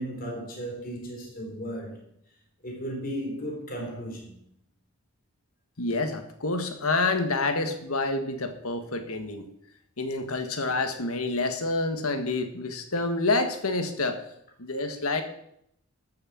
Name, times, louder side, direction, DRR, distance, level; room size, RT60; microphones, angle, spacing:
voice 1, 0.0-2.0 2.6-4.3, equal, 40° left, 3.7 m, -35 dB
voice 2, 5.8-9.5 10.0-14.2 14.6-15.2, left 3 dB, 75° left, 1.7 m, -28 dB
13.5 x 6.7 x 7.5 m
head